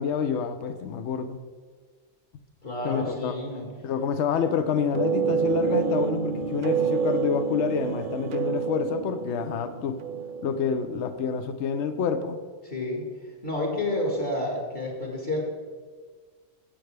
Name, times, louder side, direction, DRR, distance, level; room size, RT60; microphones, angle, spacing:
voice 1, 0.0-1.4 2.8-3.3 3.8-10.0 10.4-12.4, left 6 dB, 70° left, 10 dB, 0.9 m, -28 dB
voice 2, 2.6-3.7 12.6-13.0 13.4-15.4, left 1 dB, 50° left, -1 dB, 2.0 m, -29 dB
sound 1, 4.9-11.1, right 6 dB, 55° right, 0.6 m, -28 dB
15.0 x 7.8 x 3.4 m, 1.5 s
omnidirectional pair, 1.3 m